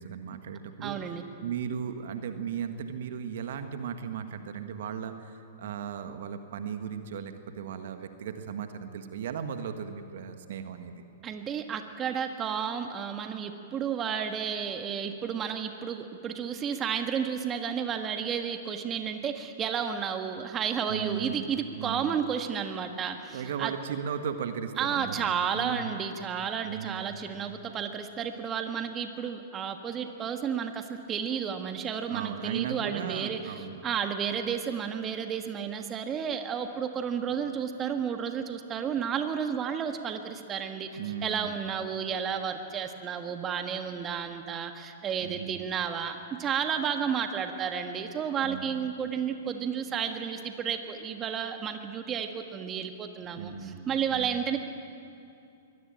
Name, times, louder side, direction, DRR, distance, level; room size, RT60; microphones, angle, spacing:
voice 1, 0.0-1.1 1.4-11.0 20.9-22.2 23.3-25.8 26.6-27.2 32.1-33.8 41.0-41.7 45.2-45.6 48.4-48.9 53.3-54.4, right 7 dB, 60° right, 8 dB, 1.6 m, -37 dB
voice 2, 0.8-1.2 11.2-23.7 24.8-33.5 33.8-40.9 41.2-54.6, right 7 dB, 25° right, 6 dB, 1.6 m, -32 dB
23.5 x 18.0 x 9.0 m, 2.6 s
figure-of-eight pair, 110°, 0 cm